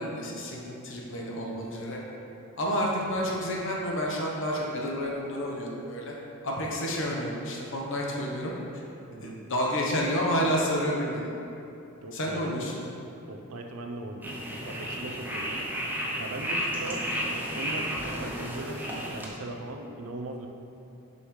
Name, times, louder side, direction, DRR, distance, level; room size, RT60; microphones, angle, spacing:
voice 1, 0.0-2.0 2.6-6.1 6.4-8.5 9.2-11.3 12.1-12.8, equal, 60° left, -2 dB, 1.0 m, -30 dB
voice 2, 9.1-9.4 12.0-12.8 13.3-15.7 16.2-20.5, right 2 dB, 70° right, 4 dB, 0.5 m, -39 dB
sound 1, 14.2-19.3, equal, 10° right, 0.7 m, -32 dB
6.6 x 5.5 x 3.2 m, 2.8 s
head